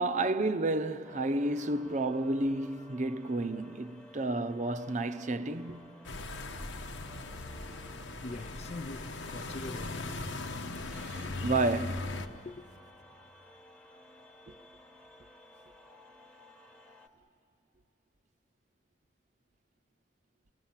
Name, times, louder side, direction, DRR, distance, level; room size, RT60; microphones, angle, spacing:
voice 1, 0.0-5.9 10.9-12.1, right 2 dB, 40° right, 0.6 m, -31 dB
sound 1, 1.0-17.1, left 1 dB, 5° left, 1.1 m, -56 dB
sound 2, 6.0-12.3, left 2 dB, 85° left, 1.1 m, -39 dB
voice 2, 8.2-10.1 11.2-11.3 12.3-12.6, left 2 dB, 35° left, 0.5 m, -43 dB
29.0 x 19.0 x 7.4 m
head